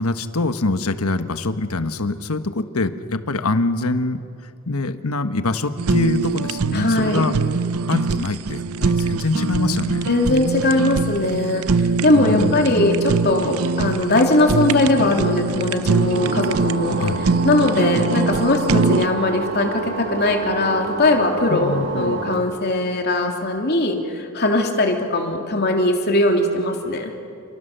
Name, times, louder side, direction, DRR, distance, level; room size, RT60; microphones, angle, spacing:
voice 1, 0.0-4.2 4.7-7.3 7.9-10.1 12.1-13.0 17.0-17.3 21.5-22.2, left 2 dB, 80° left, 9 dB, 1.4 m, -24 dB
Fire, 5.8-19.1, right 4 dB, 80° right, 0.7 m, -23 dB
voice 2, 6.7-7.2 10.1-17.0 17.4-27.1, left 2 dB, 45° left, 2 dB, 3.2 m, -20 dB
sound 1, 16.1-22.4, right 3 dB, 60° right, 5.4 m, -29 dB
30.0 x 28.0 x 6.8 m, 2.4 s
head